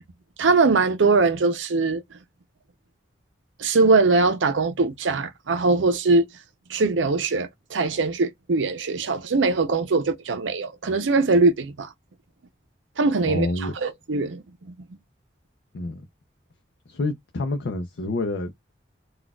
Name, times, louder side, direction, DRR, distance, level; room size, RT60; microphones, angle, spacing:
voice 1, 0.4-2.0 3.6-6.3 6.7-11.9 13.0-14.7, right 3 dB, 85° right, 0.6 m, -21 dB
voice 2, 13.3-13.7 15.7-16.0 16.9-18.5, left 2 dB, 75° left, 0.5 m, -28 dB
4.0 x 2.3 x 2.3 m
head